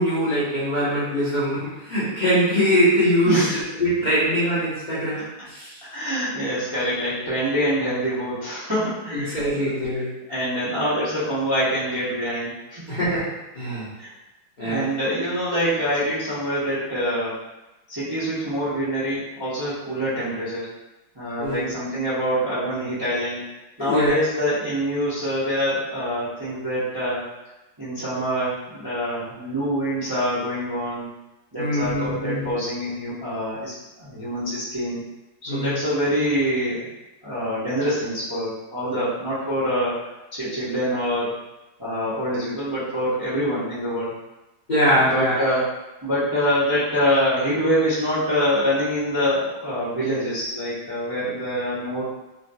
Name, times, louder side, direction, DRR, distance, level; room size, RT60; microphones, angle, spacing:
voice 1, 0.0-5.8 9.1-10.1 12.9-13.9 14.6-14.9 21.4-21.7 23.8-24.1 31.6-32.5 35.5-35.8 44.7-45.4, equal, 65° left, -12 dB, 0.4 m, -23 dB
voice 2, 3.2-3.6 5.8-10.0 10.3-12.9 14.0-14.1 14.6-17.4 17.9-20.7 21.1-23.4 23.8-27.3 27.8-31.1 31.5-35.0 35.4-36.9 37.2-41.4 41.8-44.1 44.9-45.6 46.0-52.0, equal, 35° right, -11 dB, 0.3 m, -25 dB
3.7 x 2.2 x 2.6 m, 1.0 s
omnidirectional pair, 2.2 m